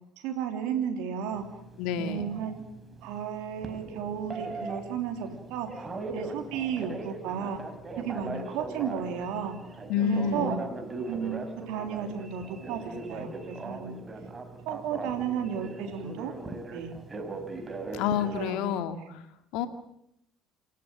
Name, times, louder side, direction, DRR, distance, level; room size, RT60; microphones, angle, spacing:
voice 1, 0.2-1.4 2.0-2.6 3.0-5.8 6.1-7.6 8.0-9.6 10.0-10.6 11.1-14.0 14.6-16.3 16.7-16.9 18.2-19.1, right 8 dB, 65° right, 4 dB, 3.4 m, -33 dB
Telephone, 1.3-18.5, right 3 dB, 25° right, 4.8 m, -40 dB
voice 2, 1.8-2.4 9.9-10.6 17.9-19.2 19.5-19.7, left 8 dB, 65° left, 8 dB, 2.3 m, -29 dB
28.0 x 14.5 x 9.4 m, 0.78 s
hypercardioid pair, 60°, 0 cm